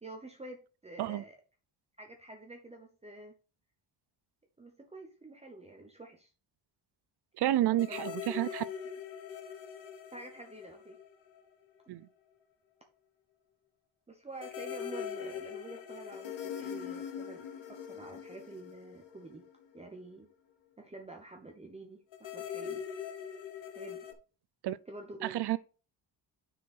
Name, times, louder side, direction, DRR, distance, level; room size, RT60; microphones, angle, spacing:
voice 1, 0.0-1.4 2.0-3.3 4.6-6.3 7.7-8.1 10.1-11.0 14.1-19.4 19.7-20.3 20.8-22.8 23.7-24.1 24.9-25.6, right 2 dB, 15° right, 0.9 m, -48 dB
voice 2, 7.4-8.6 11.9-12.0 24.6-24.8 25.2-25.6, right 14 dB, 65° right, 0.6 m, -30 dB
sound 1, 7.8-11.5 11.8-11.9 14.4-19.8 22.1-24.1, left 8 dB, 85° left, 1.4 m, -42 dB
7.6 x 5.8 x 4.2 m
cardioid pair, 140°, 44 cm